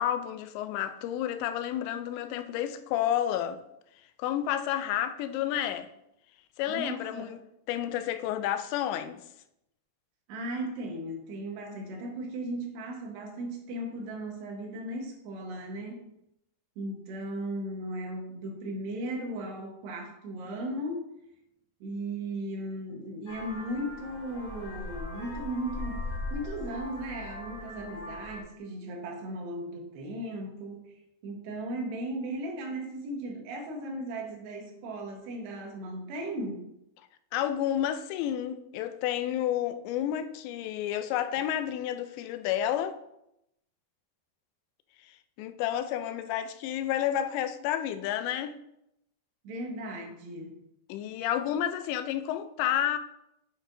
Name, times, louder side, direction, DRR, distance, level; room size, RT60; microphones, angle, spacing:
voice 1, 0.0-3.6 4.2-5.9 6.6-7.4 7.7-9.2 37.3-43.0 45.1-48.5 50.9-53.0, left 11 dB, 85° left, 2.8 m, -30 dB
voice 2, 6.7-7.3 10.3-16.1 16.8-21.1 21.8-30.9 31.2-36.7 49.4-50.6, right 1 dB, 75° right, 3.2 m, -36 dB
Vehicle horn car horn honking, 23.3-28.4, left 2 dB, 25° left, 3.0 m, -39 dB
8.8 x 7.9 x 2.6 m
omnidirectional pair, 5.1 m